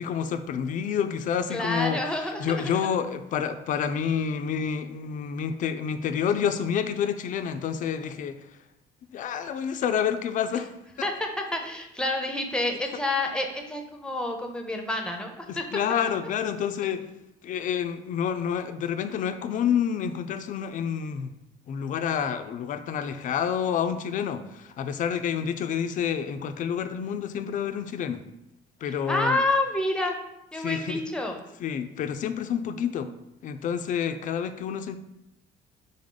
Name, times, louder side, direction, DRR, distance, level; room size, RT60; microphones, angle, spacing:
voice 1, 0.0-2.0 2.4-8.3 9.1-10.7 15.5-17.1 17.4-21.3 21.7-28.2 28.8-29.4 30.6-31.0 31.6-33.1 33.4-35.0, left 8 dB, 50° left, 10 dB, 0.4 m, -28 dB
voice 2, 1.5-2.7 11.0-15.6 29.1-30.1 30.5-31.4, left 2 dB, 5° left, 3 dB, 0.6 m, -28 dB
3.6 x 3.5 x 3.8 m, 0.87 s
cardioid pair, 110°, 17 cm